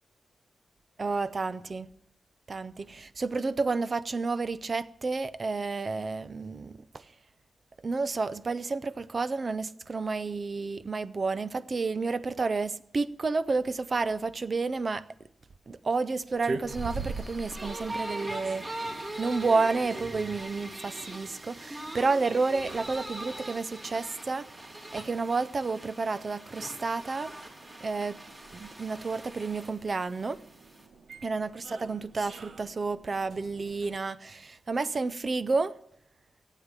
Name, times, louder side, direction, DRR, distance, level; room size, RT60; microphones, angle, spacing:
voice 1, 1.0-1.9 2.5-7.0 7.8-15.1 15.7-18.8 19.2-24.4 24.9-27.3 27.8-28.2 28.5-30.4 31.2-35.7, right 4 dB, 40° right, 0.6 m, -30 dB
sound 1, 16.3-33.9, right 3 dB, 65° right, 1.2 m, -45 dB
sound 2, 16.7-30.9, right 1 dB, 25° right, 2.9 m, -42 dB
15.0 x 8.3 x 9.7 m
wide cardioid pair, 130°, 0 cm